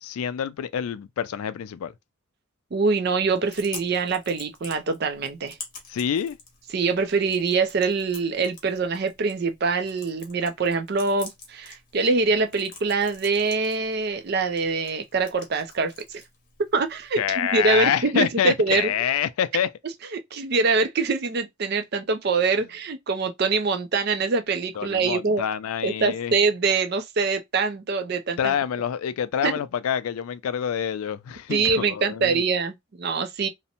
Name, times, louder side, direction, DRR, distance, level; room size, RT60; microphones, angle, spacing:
voice 1, 0.0-1.9 5.9-6.4 17.2-19.7 24.8-26.4 28.4-32.4, left 8 dB, 85° left, 0.3 m, -27 dB
voice 2, 2.7-5.6 6.7-16.2 16.7-18.9 20.1-25.4 25.8-28.6 29.4-29.5 31.5-33.5, right 4 dB, 50° right, 0.4 m, -24 dB
Chewing mastication, 3.2-17.2, left 4 dB, 40° left, 0.8 m, -47 dB
2.6 x 2.0 x 2.8 m
head